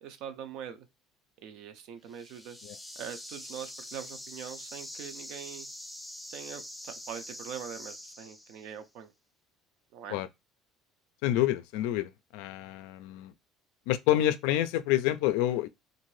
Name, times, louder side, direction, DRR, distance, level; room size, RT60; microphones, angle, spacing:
voice 1, 0.0-0.9 1.4-2.6 3.0-5.7 6.3-9.1 9.9-10.2, right 8 dB, 65° right, 0.5 m, -43 dB
sound 1, 2.1-8.8, left 1 dB, 5° left, 0.4 m, -44 dB
voice 2, 11.2-13.3 13.9-15.7, left 13 dB, 85° left, 0.3 m, -28 dB
2.6 x 2.5 x 3.1 m
cardioid pair, 135°, 0 cm